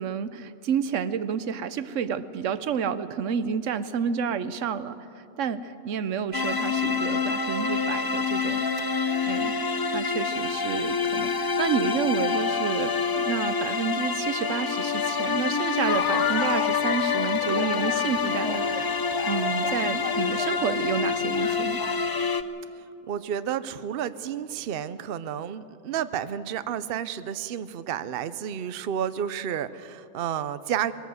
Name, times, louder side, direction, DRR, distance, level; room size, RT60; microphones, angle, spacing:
voice 1, 0.0-8.6 9.2-9.5 9.9-18.9 19.3-21.8, right 7 dB, 85° right, 14 dB, 1.1 m, -30 dB
sound 1, 6.3-22.4, left 5 dB, 30° left, 0.4 m, -27 dB
sound 2, 15.9-22.3, left 8 dB, 75° left, 1.1 m, -34 dB
voice 2, 23.1-30.9, right 9 dB, 55° right, 13 dB, 0.8 m, -31 dB
21.5 x 16.5 x 7.9 m, 2.7 s
omnidirectional pair, 1.3 m